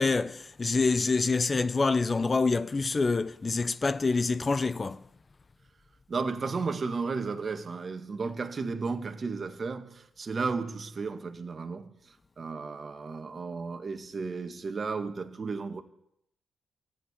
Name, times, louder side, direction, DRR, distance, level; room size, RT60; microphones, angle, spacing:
voice 1, 0.0-5.0, left 4 dB, 35° left, 0.8 m, -26 dB
voice 2, 6.1-15.8, right 4 dB, 45° right, 1.8 m, -34 dB
14.5 x 8.9 x 9.6 m
supercardioid pair, 50°, 0 cm